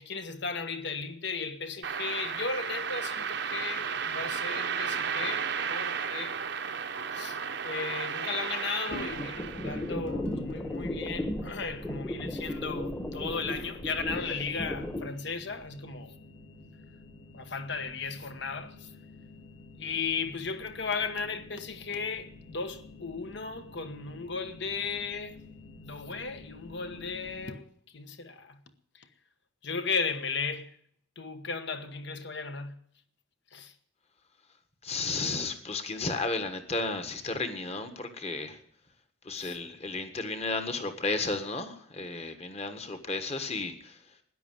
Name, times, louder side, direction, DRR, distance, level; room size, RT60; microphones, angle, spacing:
voice 1, 0.0-6.4 7.1-16.1 17.3-18.9 19.8-25.4 25.8-28.6 28.9-29.1 29.6-30.8 31.2-32.7 33.5-33.7 39.3-39.6, left 5 dB, 60° left, 1.2 m, -35 dB
sound 1, 1.8-9.9, right 6 dB, 55° right, 0.9 m, -33 dB
sound 2, 8.9-15.1, left 1 dB, 10° left, 1.2 m, -35 dB
sound 3, 10.0-27.4, left 2 dB, 75° left, 2.6 m, -51 dB
voice 2, 34.8-38.6 39.2-44.0, left 3 dB, 30° left, 1.5 m, -33 dB
13.0 x 10.0 x 7.9 m
head